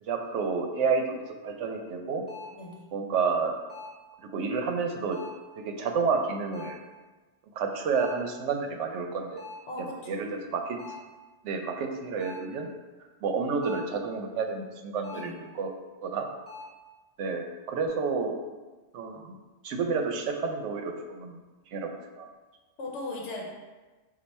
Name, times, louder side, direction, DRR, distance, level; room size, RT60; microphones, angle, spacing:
voice 1, 0.0-2.2 2.9-3.5 4.2-5.2 5.6-6.8 7.6-9.4 10.1-10.8 11.4-12.7 13.2-15.7 16.0-16.3 17.2-18.4 18.9-19.3 19.6-21.4 21.7-22.3, right 5 dB, 85° right, 4 dB, 0.9 m, -30 dB
sound 1, 1.2-1.3 2.3-2.7 3.7-4.1 5.1-5.5 6.5-6.9 7.9-8.3 9.4-9.8 10.8-11.2 12.2-12.6 13.6-14.0 15.0-15.4 16.5-16.8, left 3 dB, 10° right, 0.8 m, -44 dB
voice 2, 2.5-2.8 9.7-10.2 15.1-15.4 22.8-23.7, left 2 dB, 75° left, -1 dB, 1.0 m, -38 dB
4.4 x 2.5 x 4.1 m, 1.2 s
omnidirectional pair, 1.2 m